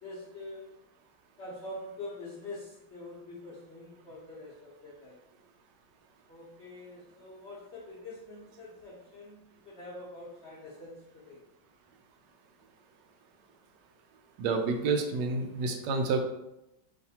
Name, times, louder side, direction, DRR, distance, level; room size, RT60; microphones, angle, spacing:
voice 1, 0.0-0.8 1.4-5.2 6.3-9.4 9.6-11.4, left 2 dB, 50° left, -7 dB, 0.8 m, -45 dB
voice 2, 14.4-16.2, right 4 dB, 75° right, 4 dB, 1.2 m, -29 dB
4.1 x 3.2 x 2.8 m, 0.88 s
omnidirectional pair, 2.1 m